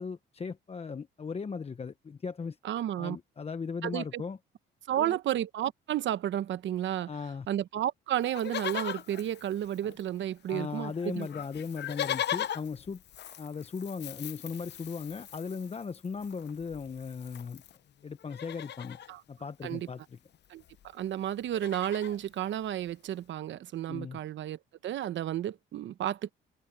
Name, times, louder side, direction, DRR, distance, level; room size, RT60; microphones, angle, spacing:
voice 1, 0.0-2.6 3.0-4.4 4.9-5.2 7.1-7.5 10.5-13.0 13.4-17.6 18.0-19.0 19.3-20.2 23.9-24.2, left 5 dB, 30° left, 0.9 m, -37 dB
voice 2, 2.6-3.2 3.8-4.2 4.9-7.1 7.5-11.3 19.1-19.2 19.6-19.9 20.5-20.6 20.9-26.3, right 11 dB, 70° right, 1.0 m, -32 dB
Livestock farm animals working animals, 8.2-10.2 10.5-10.6 10.8-17.8 18.2-19.1 20.3-20.4 20.6-20.9 21.2-22.2 22.8-22.9, left 10 dB, 60° left, 0.9 m, -39 dB
cardioid pair, 90°, 20 cm